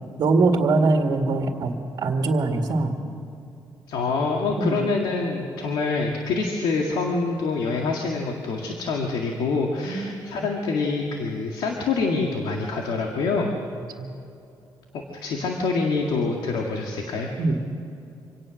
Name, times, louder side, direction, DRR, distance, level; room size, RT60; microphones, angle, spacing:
voice 1, 0.2-3.0 4.6-4.8 9.8-10.3 14.0-14.1 17.4-17.6, right 3 dB, 55° right, 3 dB, 2.1 m, -22 dB
voice 2, 3.9-13.6 14.9-17.3, left 4 dB, 85° left, 1 dB, 2.0 m, -26 dB
26.0 x 18.0 x 6.5 m, 2.7 s
cardioid pair, 160°, 8 cm